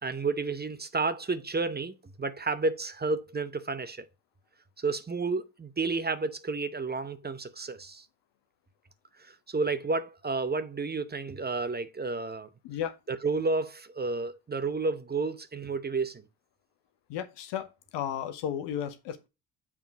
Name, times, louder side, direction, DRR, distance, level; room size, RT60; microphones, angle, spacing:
voice 1, 0.0-4.1 4.8-8.0 9.2-12.5 13.1-16.2, right 3 dB, 20° right, 0.9 m, -31 dB
voice 2, 17.1-17.7 17.9-19.3, left 9 dB, 65° left, 1.1 m, -33 dB
7.2 x 3.7 x 4.6 m
hypercardioid pair, 50°, 46 cm